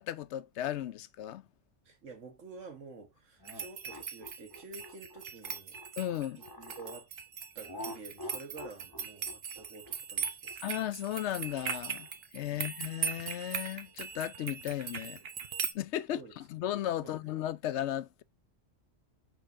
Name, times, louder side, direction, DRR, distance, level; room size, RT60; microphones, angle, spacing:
voice 1, 0.0-1.5 6.0-6.4 10.6-12.1 12.3-15.2 15.7-18.2, left 12 dB, 70° left, 0.8 m, -35 dB
voice 2, 1.8-5.8 6.4-7.1 7.5-10.6 12.5-12.6 16.1-16.3 17.0-17.2, right 3 dB, 70° right, 1.8 m, -50 dB
sound 1, 3.4-7.0 7.6-12.1, left 1 dB, 15° left, 1.3 m, -47 dB
sound 2, 3.5-15.7, right 7 dB, 55° right, 1.0 m, -39 dB
8.8 x 4.4 x 2.5 m
omnidirectional pair, 1.3 m